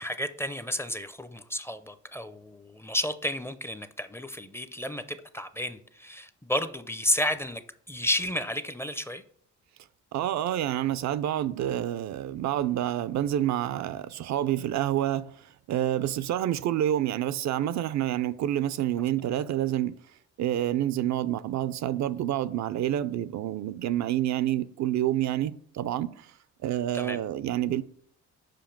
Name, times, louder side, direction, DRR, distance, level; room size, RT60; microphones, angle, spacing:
voice 1, 0.0-7.6 7.9-9.2 26.9-27.2, equal, 10° left, 0.4 m, -32 dB
voice 2, 10.1-20.0 20.4-26.4 26.6-27.8, right 12 dB, 65° right, 0.4 m, -28 dB
5.2 x 5.2 x 5.8 m
cardioid pair, 90°, 30 cm